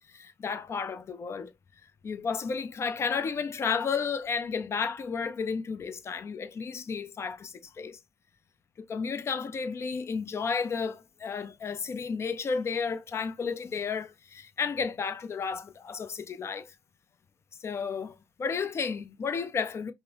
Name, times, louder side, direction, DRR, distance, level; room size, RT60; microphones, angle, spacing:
voice 1, 0.0-1.5 2.0-8.0 8.8-16.7 17.6-19.9, left 5 dB, 35° left, 0.6 m, -32 dB
5.3 x 2.0 x 2.9 m
figure-of-eight pair, 50°, 8 cm